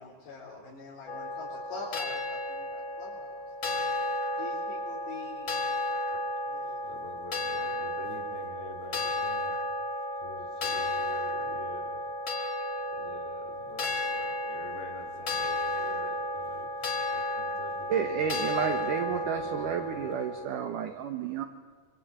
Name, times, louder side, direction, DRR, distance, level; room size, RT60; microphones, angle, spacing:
voice 1, 0.0-3.4 4.4-5.5 6.5-6.8, left 3 dB, 80° left, -4 dB, 6.3 m, -44 dB
sound 1, 1.1-20.5, left 1 dB, 35° left, 2.6 m, -33 dB
voice 2, 6.6-9.7 10.2-12.0 12.4-12.5 12.9-20.1, left 4 dB, 60° left, 2 dB, 5.0 m, -48 dB
voice 3, 17.9-21.4, right 7 dB, 65° right, 5 dB, 2.3 m, -31 dB
25.0 x 24.0 x 8.9 m, 1.5 s
omnidirectional pair, 4.9 m